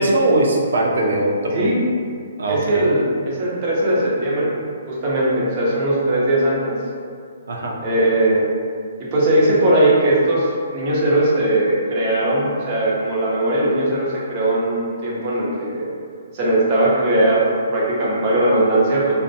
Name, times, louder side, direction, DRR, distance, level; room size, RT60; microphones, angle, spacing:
voice 1, 0.0-1.7 2.4-2.8 7.5-7.8, right 1 dB, 80° right, -1 dB, 0.4 m, -20 dB
voice 2, 2.5-4.5 4.9-6.8 7.8-8.4 9.0-15.9 16.3-17.5 17.7-19.1, right 1 dB, 35° right, -6 dB, 0.6 m, -19 dB
2.4 x 2.0 x 2.6 m, 2.2 s
hypercardioid pair, 150°, 0 cm